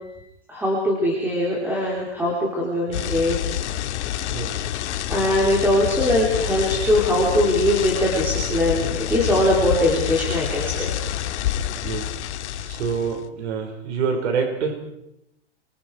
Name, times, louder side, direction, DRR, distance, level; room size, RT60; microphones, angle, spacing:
voice 1, 0.5-3.4 5.1-10.9, left 1 dB, 5° right, -3 dB, 3.3 m, -21 dB
sound 1, 2.9-13.2, left 10 dB, 80° left, 1.8 m, -27 dB
voice 2, 11.8-12.2 12.7-14.7, right 5 dB, 80° right, 3 dB, 5.2 m, -26 dB
28.5 x 24.0 x 4.7 m, 0.82 s
supercardioid pair, 175°, 34 cm